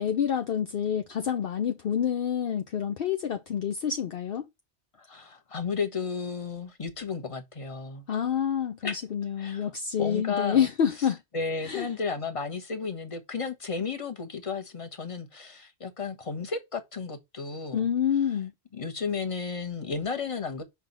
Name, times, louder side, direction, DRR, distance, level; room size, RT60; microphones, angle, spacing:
voice 1, 0.0-4.5 8.1-11.2 11.6-11.9 17.7-18.5, left 8 dB, 60° left, 0.8 m, -27 dB
voice 2, 5.0-8.0 8.8-9.0 9.4-9.7 10.0-10.7 11.0-11.1 11.3-17.8 18.7-20.6, left 5 dB, 30° left, 1.2 m, -33 dB
5.8 x 3.6 x 5.3 m
omnidirectional pair, 1.2 m